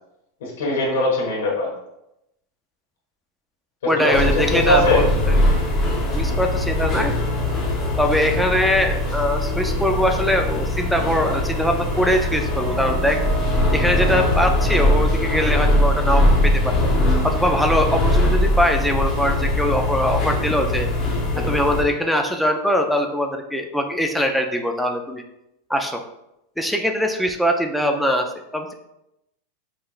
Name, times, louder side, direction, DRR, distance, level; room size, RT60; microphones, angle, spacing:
voice 1, 0.4-1.7 3.8-5.0 21.3-21.6, left 1 dB, 85° left, -3 dB, 1.5 m, -21 dB
voice 2, 3.9-5.1 6.1-7.2 8.0-13.2 13.7-16.8 17.2-20.9 21.4-25.2 25.7-26.0 26.6-28.7, equal, ahead, 3 dB, 0.4 m, -22 dB
sound 1, 4.1-21.8, left 1 dB, 20° left, 0.8 m, -21 dB
sound 2, 11.9-18.0, right 7 dB, 60° right, 0.7 m, -36 dB
5.6 x 3.2 x 2.4 m, 0.85 s
supercardioid pair, 170°, 0 cm